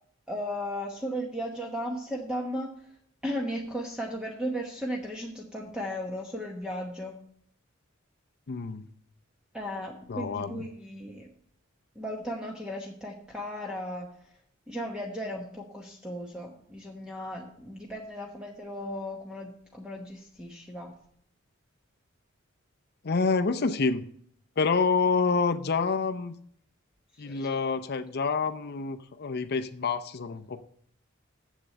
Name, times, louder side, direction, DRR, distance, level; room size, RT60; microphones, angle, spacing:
voice 1, 0.3-2.9 3.2-7.2 9.5-11.3 11.9-14.1 14.7-20.9 27.1-27.6, equal, 5° right, -1 dB, 1.1 m, -36 dB
voice 2, 8.5-8.8 10.1-10.6 23.0-24.0 24.6-26.3 27.2-30.6, left 4 dB, 50° left, 9 dB, 0.6 m, -27 dB
7.5 x 7.3 x 6.7 m, 0.64 s
head